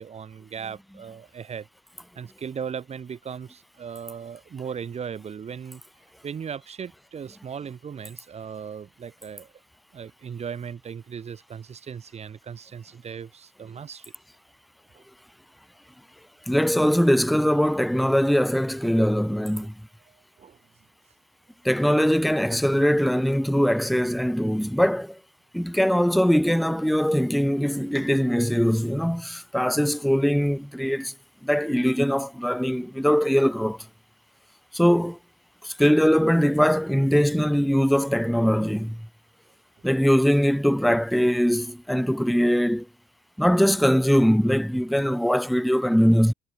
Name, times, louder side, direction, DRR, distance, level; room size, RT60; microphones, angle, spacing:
voice 1, 0.0-1.7 2.1-5.8 6.2-9.5 9.9-14.0 20.1-20.6, right 7 dB, 40° right, 4.9 m, -37 dB
voice 2, 16.5-19.7 21.6-25.2 25.5-31.1 31.4-33.9 34.7-35.2 35.6-39.1 39.8-42.9 43.4-46.3, equal, ahead, 1.2 m, -21 dB
cardioid pair, 110°, 17 cm